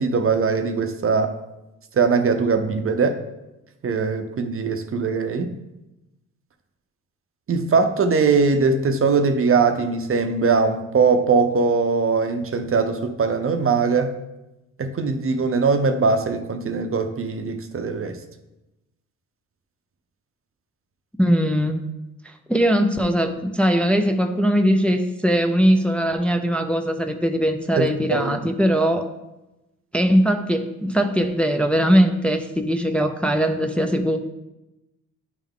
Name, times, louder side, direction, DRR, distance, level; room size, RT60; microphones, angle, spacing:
voice 1, 0.0-1.4 1.9-3.2 3.8-5.5 7.5-14.1 14.8-18.2 27.8-28.4, right 4 dB, 40° right, 7 dB, 0.7 m, -21 dB
voice 2, 21.2-21.8 22.2-29.1 29.9-34.2, equal, 5° left, 4 dB, 0.6 m, -20 dB
10.5 x 3.5 x 3.7 m, 0.97 s
cardioid pair, 70°, 33 cm